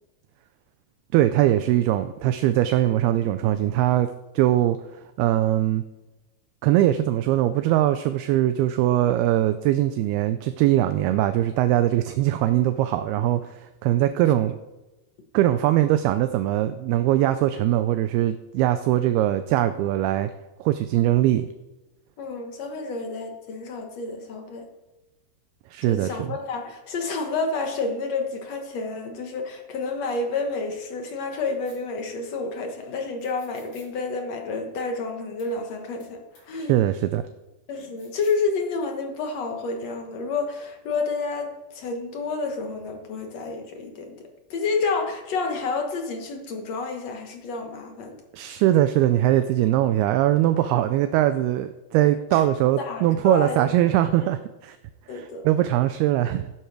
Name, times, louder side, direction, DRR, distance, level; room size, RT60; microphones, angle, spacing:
voice 1, 1.1-4.8 5.2-5.8 6.6-14.6 15.3-20.3 20.6-21.5 25.7-26.4 36.6-37.2 48.3-54.8 55.1-56.5, right 13 dB, 80° right, 10 dB, 2.4 m, -21 dB
voice 2, 22.2-24.7 25.9-36.9 37.7-48.2 52.3-52.4 52.8-53.8 55.1-55.5, left 4 dB, 65° left, 3 dB, 1.7 m, -30 dB
sound 1, 31.6-31.8 33.2-33.9 35.4-35.5 36.0-36.1 36.3-36.4 37.8-38.4, left 3 dB, 45° left, 4.5 m, -55 dB
14.0 x 10.0 x 4.6 m, 1.1 s
omnidirectional pair, 4.8 m